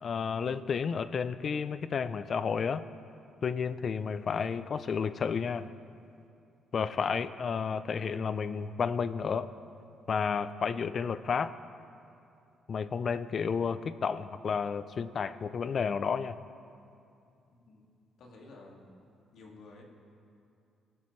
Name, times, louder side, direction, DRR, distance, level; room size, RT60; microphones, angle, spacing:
voice 1, 0.0-2.8 3.4-5.7 6.7-9.5 10.1-11.5 12.7-16.4, left 6 dB, 50° left, 14 dB, 0.5 m, -31 dB
voice 2, 17.5-17.9 18.2-19.0 19.3-19.8, left 2 dB, 70° left, -1 dB, 2.2 m, -52 dB
18.5 x 12.5 x 3.2 m, 2.5 s
cardioid pair, 90°, 0 cm